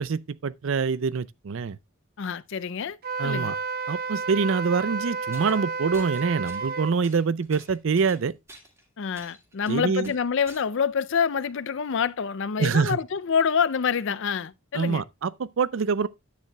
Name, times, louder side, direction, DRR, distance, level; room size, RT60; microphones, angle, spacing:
voice 1, 0.0-1.8 3.2-3.6 3.9-8.3 9.7-10.1 12.6-13.0 14.7-16.1, right 5 dB, 65° right, 0.5 m, -25 dB
voice 2, 2.2-3.0 3.2-3.5 9.0-15.0, left 6 dB, 60° left, 0.5 m, -26 dB
Wind instrument woodwind instrument, 3.0-7.0, right 4 dB, 45° right, 0.9 m, -31 dB
sound 1, 5.3-5.6 5.9-6.7 7.0-8.8 9.1-10.6, right 1 dB, 15° right, 2.1 m, -49 dB
10.5 x 9.2 x 2.3 m
head